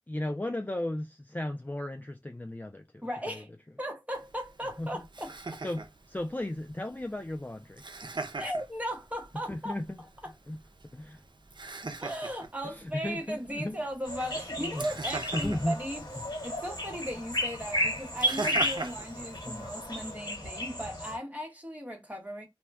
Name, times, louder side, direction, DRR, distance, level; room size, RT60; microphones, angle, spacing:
voice 1, 0.1-3.4 4.8-4.9 5.6-5.8 6.1-7.8 9.5-10.0 10.5-10.6 10.9-11.2 13.0-13.7 14.6-14.8 15.3-15.8 19.4-19.7, left 1 dB, 20° left, 0.3 m, -35 dB
voice 2, 3.0-3.5 3.8-5.6 8.4-10.4 12.0-16.0 16.4-22.5, equal, 15° right, 0.9 m, -37 dB
Laughter, 4.1-20.1, right 3 dB, 65° right, 0.4 m, -42 dB
sound 1, 14.1-21.2, equal, 50° left, 1.1 m, -33 dB
2.2 x 2.1 x 3.4 m
wide cardioid pair, 40°, 9 cm